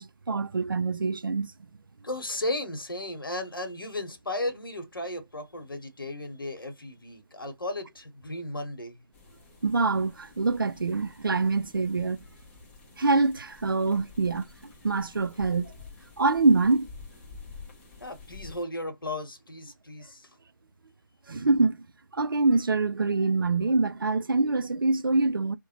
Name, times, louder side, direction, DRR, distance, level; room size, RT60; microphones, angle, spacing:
voice 1, 0.0-1.5 9.6-12.2 13.0-15.7 16.2-16.9 21.3-21.8 22.1-25.6, right 3 dB, 85° right, 0.4 m, -25 dB
voice 2, 2.0-9.0 18.0-20.4, left 1 dB, 90° left, 1.0 m, -35 dB
sound 1, 9.1-18.6, left 4 dB, 10° left, 0.5 m, -50 dB
2.5 x 2.1 x 2.8 m
figure-of-eight pair, 155°, 11 cm